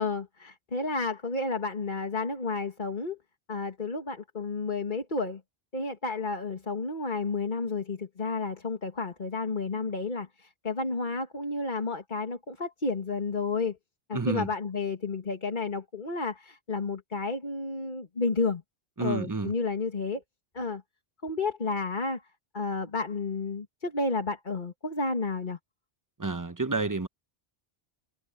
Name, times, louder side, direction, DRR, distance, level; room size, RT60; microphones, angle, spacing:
voice 1, 0.0-3.2 3.5-5.4 5.7-13.8 14.1-18.6 19.0-20.2 20.5-20.8 21.2-22.2 22.5-25.6, left 3 dB, 50° left, 2.2 m, -31 dB
voice 2, 14.1-14.5 19.0-19.5 26.2-27.1, right 3 dB, 20° right, 0.9 m, -30 dB
omnidirectional pair, 1.1 m